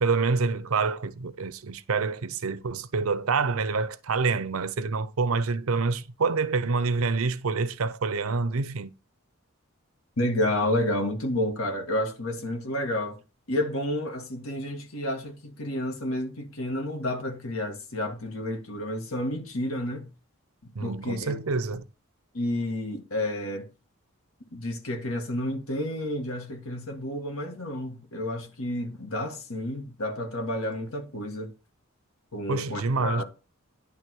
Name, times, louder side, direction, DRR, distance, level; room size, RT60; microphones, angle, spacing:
voice 1, 0.0-8.9 20.7-21.9 32.5-33.2, right 4 dB, 80° right, 0.7 m, -27 dB
voice 2, 10.2-13.2 13.5-20.1 20.8-21.4 22.3-23.7 24.5-31.5 32.3-33.2, left 1 dB, 85° left, 1.9 m, -30 dB
10.5 x 3.6 x 6.1 m
head